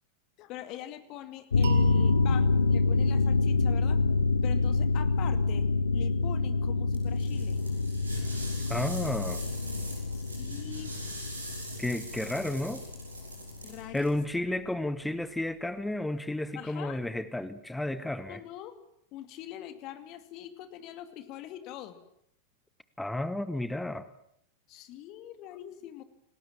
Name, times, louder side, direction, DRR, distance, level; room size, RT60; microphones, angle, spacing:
voice 1, 0.4-4.0 4.4-5.7 5.9-7.6 10.1-10.9 13.6-14.2 16.5-17.0 18.3-18.7 19.1-22.0 24.7-26.0, left 12 dB, 40° left, 10 dB, 2.4 m, -43 dB
sound 1, 1.5-13.6 13.9-14.0, left 3 dB, 70° left, 0.9 m, -27 dB
sound 2, 1.6-4.5, right 8 dB, 60° right, 2.1 m, -41 dB
sound 3, 6.9-14.2, right 2 dB, 80° right, 7.5 m, -43 dB
voice 2, 8.7-9.4 11.8-12.8 13.9-18.4 23.0-24.1, left 1 dB, 5° left, 14 dB, 1.1 m, -32 dB
28.0 x 19.5 x 7.4 m, 0.74 s
figure-of-eight pair, 90°, 0 cm